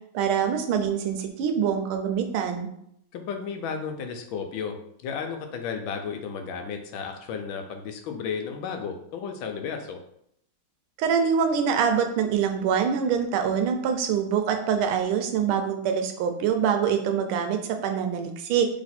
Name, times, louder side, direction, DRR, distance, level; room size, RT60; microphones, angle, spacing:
voice 1, 0.1-2.7 11.0-18.7, right 7 dB, 80° right, 6 dB, 1.4 m, -25 dB
voice 2, 3.1-4.8 5.0-10.0, left 6 dB, 75° left, 5 dB, 1.3 m, -33 dB
3.3 x 3.0 x 4.2 m, 0.73 s
omnidirectional pair, 2.3 m